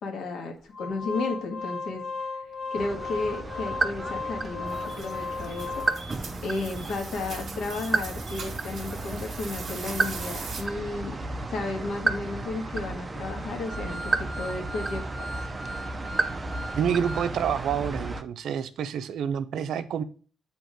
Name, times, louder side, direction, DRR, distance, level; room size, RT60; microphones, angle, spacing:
voice 1, 0.0-2.0 2.7-5.8 6.4-11.2 11.5-15.3, left 3 dB, 70° left, 4 dB, 1.4 m, -33 dB
Organ, 0.7-6.3 6.8-6.9 7.1-7.3 7.8-17.4 17.7-17.8, left 3 dB, 20° left, 1.3 m, -38 dB
sound 1, 2.7-18.2, right 3 dB, 25° right, 0.5 m, -33 dB
sound 2, 4.7-10.6, right 4 dB, 50° right, 1.4 m, -42 dB
voice 2, 16.7-20.0, right 8 dB, 70° right, 11 dB, 0.5 m, -28 dB
7.5 x 3.0 x 5.0 m, 0.40 s
cardioid pair, 90°, 0 cm